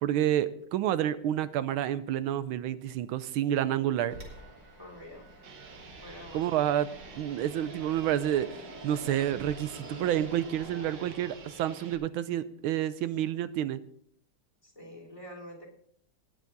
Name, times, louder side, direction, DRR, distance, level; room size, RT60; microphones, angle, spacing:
voice 1, 0.0-4.1 6.3-6.9 7.2-13.8, right 11 dB, 90° right, 14 dB, 1.5 m, -29 dB
Fixed-wing aircraft airplane, 4.1-11.9, right 1 dB, 45° right, 3.3 m, -47 dB
voice 2, 4.8-5.3 6.0-6.6 14.6-15.7, left 1 dB, 15° left, 0 dB, 3.3 m, -46 dB
sound 1, 5.4-12.0, right 5 dB, 70° right, 2.0 m, -50 dB
19.0 x 7.1 x 4.0 m, 0.64 s
omnidirectional pair, 2.2 m